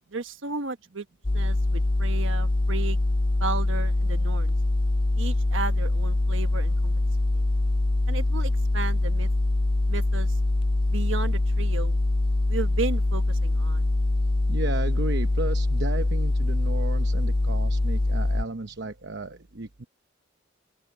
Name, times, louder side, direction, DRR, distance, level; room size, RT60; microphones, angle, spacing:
voice 1, 0.1-1.0 1.3-3.0 3.4-4.5 5.1-6.9 7.3-7.4 8.1-9.3 9.9-10.3 10.9-12.0 12.5-13.9, right 4 dB, 75° right, 1.2 m, -34 dB
sound 1, 1.2-18.4, left 2 dB, 25° left, 0.5 m, -24 dB
voice 2, 14.5-19.9, right 2 dB, 60° right, 0.9 m, -34 dB
open air
head